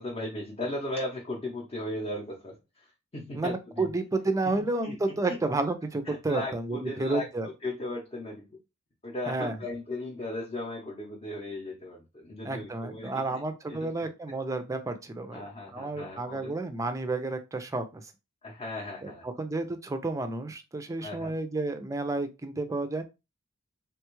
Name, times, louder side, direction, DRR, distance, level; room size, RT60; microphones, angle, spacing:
voice 1, 0.0-2.9 3.1-3.9 4.4-5.4 6.1-8.5 9.0-13.4 13.7-14.1 15.3-16.5 18.4-19.3 21.0-21.3, left 1 dB, 30° left, -2 dB, 0.6 m, -37 dB
voice 2, 3.3-7.5 9.3-9.6 12.4-15.4 15.7-18.1 19.0-23.0, right 2 dB, 15° right, 8 dB, 0.4 m, -31 dB
3.4 x 2.3 x 2.9 m, 0.26 s
head